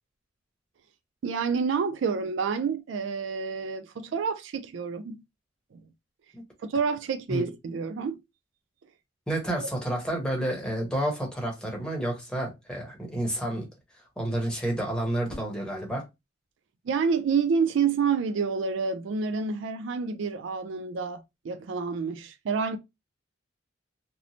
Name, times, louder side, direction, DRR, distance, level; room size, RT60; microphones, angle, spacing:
voice 1, 1.2-5.2 5.7-5.8 6.6-8.2 16.9-22.8, right 5 dB, 70° right, 0.3 m, -28 dB
voice 2, 9.3-13.7 14.2-16.0, right 1 dB, 5° left, 0.9 m, -30 dB
3.0 x 2.0 x 2.7 m
head